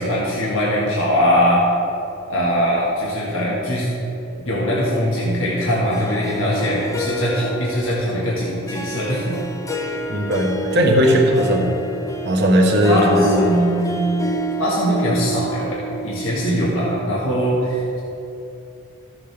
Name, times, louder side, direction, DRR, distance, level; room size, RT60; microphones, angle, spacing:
voice 1, 0.0-1.6 2.3-3.9 4.4-9.4 12.9-14.1 14.6-18.0, equal, 75° left, -6 dB, 1.7 m, -21 dB
Harp, 5.9-17.0, right 1 dB, 15° left, 0.5 m, -29 dB
voice 2, 10.1-11.7 12.2-13.5, equal, 55° right, 0 dB, 1.2 m, -17 dB
14.0 x 7.5 x 3.5 m, 2.7 s
head